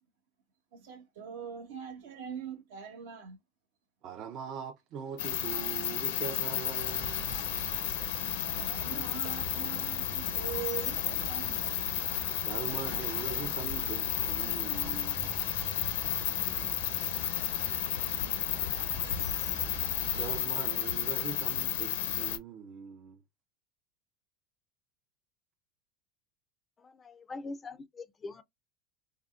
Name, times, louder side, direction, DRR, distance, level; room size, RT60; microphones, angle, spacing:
voice 1, 0.7-3.4 8.4-11.6, right 8 dB, 80° right, 1.1 m, -42 dB
voice 2, 4.0-7.4 12.4-15.3 18.6-19.1 20.1-23.2, right 7 dB, 45° right, 0.4 m, -42 dB
sound 1, 5.2-22.4, left 11 dB, 85° left, 0.5 m, -32 dB
sound 2, 6.8-20.4, right 2 dB, 30° right, 1.0 m, -44 dB
voice 3, 26.8-28.4, left 3 dB, 20° left, 0.3 m, -43 dB
3.5 x 2.0 x 2.3 m
supercardioid pair, 135°, 0 cm